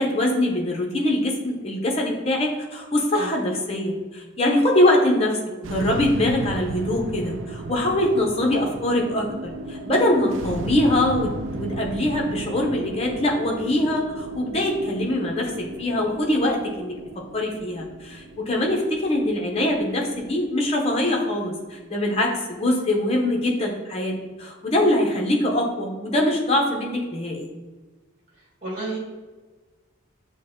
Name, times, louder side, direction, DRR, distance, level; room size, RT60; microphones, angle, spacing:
voice 1, 0.0-27.5, left 1 dB, 30° left, 0 dB, 0.7 m, -23 dB
sound 1, 5.6-22.0, right 2 dB, 65° right, 0.4 m, -35 dB
voice 2, 28.6-29.0, right 2 dB, 35° right, -4 dB, 1.4 m, -30 dB
6.5 x 2.2 x 3.6 m, 1.3 s
head